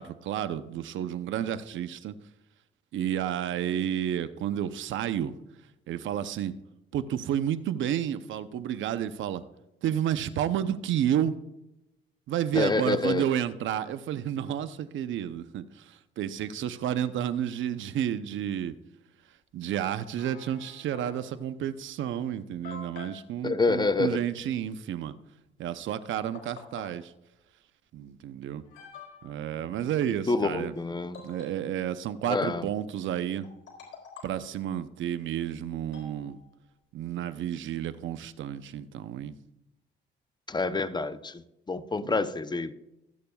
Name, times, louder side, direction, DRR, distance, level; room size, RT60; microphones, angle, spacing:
voice 1, 0.0-2.1 2.9-5.3 5.9-6.5 6.9-9.4 9.8-11.3 12.3-18.8 19.5-25.1 25.6-27.1 27.9-28.6 29.2-30.7 31.2-33.5 34.2-36.4 36.9-39.3 42.0-42.2, right 10 dB, 75° right, 12 dB, 0.7 m, -31 dB
voice 2, 12.5-13.3 23.4-24.2 30.3-31.2 32.3-32.7 40.5-42.7, left 3 dB, 20° left, 12 dB, 0.6 m, -27 dB
sound 1, 20.2-21.4 22.1-22.2 22.6-23.2 25.8-25.9 26.3-26.9 28.0-28.1 28.6-29.4 31.1-32.0 33.4-34.5 35.9-36.8, left 5 dB, 70° left, 4.1 m, -47 dB
25.5 x 8.6 x 2.3 m, 0.93 s
cardioid pair, 90°, 20 cm